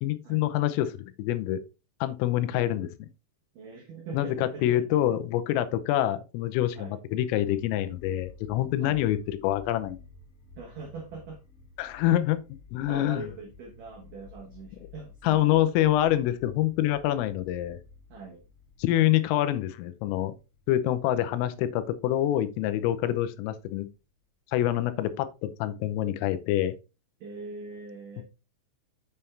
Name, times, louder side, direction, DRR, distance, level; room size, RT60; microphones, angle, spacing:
voice 1, 0.0-1.6 2.0-3.1 4.1-10.0 11.8-12.4 12.7-13.2 15.3-17.8 18.8-20.4 20.7-23.9 24.5-26.8, left 13 dB, 85° left, 3.4 m, -26 dB
voice 2, 3.5-4.8 6.7-7.0 8.8-9.1 10.6-11.4 12.1-12.2 12.8-15.7 18.1-18.5 23.0-23.2 27.2-28.2, right 4 dB, 85° right, 1.8 m, -42 dB
sound 1, 7.1-24.2, left 4 dB, 50° left, 1.8 m, -54 dB
7.3 x 7.0 x 3.2 m
omnidirectional pair, 5.9 m